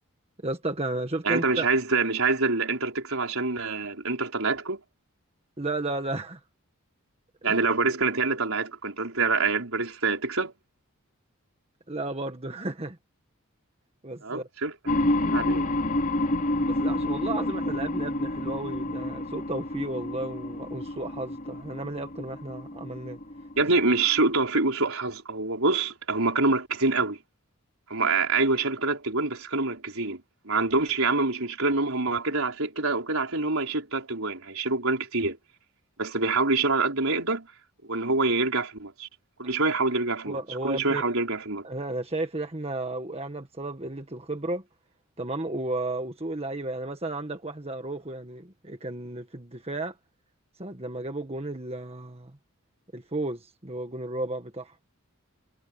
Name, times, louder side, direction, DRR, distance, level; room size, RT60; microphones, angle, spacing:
voice 1, 0.4-1.7 5.6-6.4 7.4-7.6 11.9-13.0 14.0-14.5 16.6-23.2 40.2-41.1 41.6-44.6 45.2-50.0 50.6-52.4 52.9-54.7, right 2 dB, 25° right, 1.6 m, -33 dB
voice 2, 1.2-4.8 7.4-10.5 14.2-15.7 23.6-27.2 27.9-35.4 36.0-37.5 37.8-39.1 39.4-41.7, right 3 dB, 70° right, 4.9 m, -26 dB
sound 1, 14.9-24.4, left 1 dB, 40° left, 4.4 m, -29 dB
head